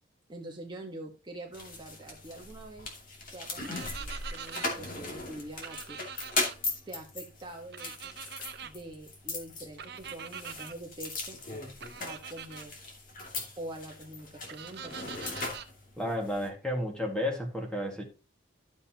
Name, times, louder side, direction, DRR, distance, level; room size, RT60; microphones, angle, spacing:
voice 1, 0.3-2.9 3.3-6.0 6.9-8.2 8.6-11.4 12.0-12.8 13.6-15.3, right 1 dB, 25° right, 0 dB, 1.4 m, -45 dB
sound 1, 1.5-16.5, left 3 dB, 45° left, 2.6 m, -39 dB
sound 2, 3.6-4.7 5.6-6.5 7.7-8.7 9.8-10.7 11.8-12.6 14.5-15.7, right 8 dB, 60° right, 0.8 m, -43 dB
voice 2, 16.0-18.0, left 1 dB, 5° left, 1 dB, 2.0 m, -32 dB
12.5 x 7.1 x 2.9 m, 0.30 s
head